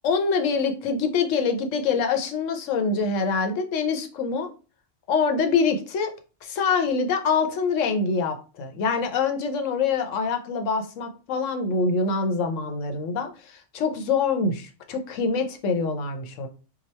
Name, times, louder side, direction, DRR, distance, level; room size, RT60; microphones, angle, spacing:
voice 1, 0.0-4.5 5.1-6.1 6.4-16.5, left 5 dB, 85° left, 6 dB, 1.0 m, -25 dB
2.9 x 2.3 x 4.1 m, 0.35 s
omnidirectional pair, 1.3 m